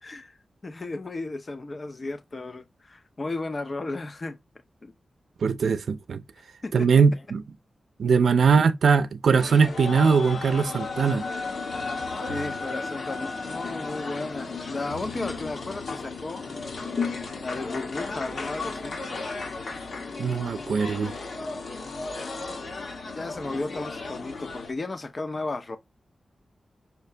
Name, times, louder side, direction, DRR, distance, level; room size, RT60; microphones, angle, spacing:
voice 1, 0.0-4.4 4.8-4.9 6.6-7.2 8.0-8.1 12.2-16.4 17.4-19.0 23.1-25.8, left 2 dB, 30° left, 0.6 m, -34 dB
voice 2, 5.4-6.2 6.7-7.4 8.0-11.2 20.2-21.1, right 5 dB, 75° right, 0.5 m, -21 dB
sound 1, 9.3-24.7, left 4 dB, 65° left, 1.5 m, -34 dB
5.7 x 2.8 x 3.3 m
wide cardioid pair, 165°, 0 cm